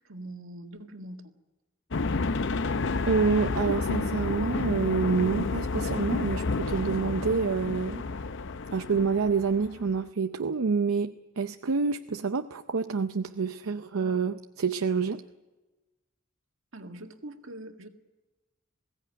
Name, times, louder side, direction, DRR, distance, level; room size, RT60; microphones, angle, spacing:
voice 1, 0.0-1.3 16.7-17.9, right 1 dB, 70° right, 5 dB, 1.9 m, -43 dB
sound 1, 1.9-10.0, left 3 dB, 60° left, 0.7 m, -30 dB
voice 2, 3.0-8.1 8.7-15.2, right 5 dB, 85° right, 8 dB, 0.6 m, -27 dB
21.0 x 16.5 x 9.3 m, 1.2 s
head